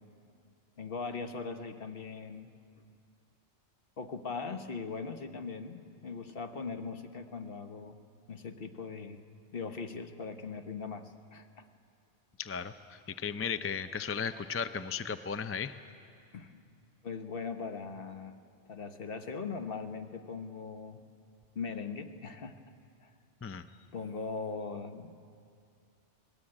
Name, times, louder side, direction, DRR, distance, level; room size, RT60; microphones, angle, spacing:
voice 1, 0.8-2.5 4.0-8.0 8.3-9.2 9.5-11.7 16.3-16.6 17.0-18.3 18.7-21.0 21.5-22.5 23.0-23.1 23.9-25.2, left 5 dB, 55° left, 7 dB, 1.3 m, -40 dB
voice 2, 12.4-15.7 23.4-23.6, left 6 dB, 20° left, 11 dB, 0.3 m, -35 dB
24.0 x 19.0 x 8.8 m, 2.4 s
omnidirectional pair, 1.2 m